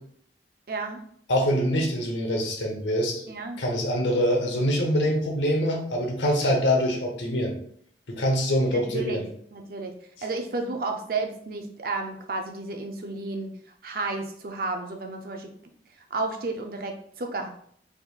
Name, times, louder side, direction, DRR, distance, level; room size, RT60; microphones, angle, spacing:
voice 1, 0.7-1.0 3.3-3.6 8.7-9.2 9.5-9.9 10.2-13.5 13.8-15.5 16.1-17.5, right 3 dB, 55° right, 3 dB, 0.5 m, -32 dB
voice 2, 1.3-3.3 3.6-7.5 8.1-9.3, equal, 90° left, 2 dB, 0.8 m, -24 dB
3.6 x 3.0 x 2.3 m, 0.63 s
head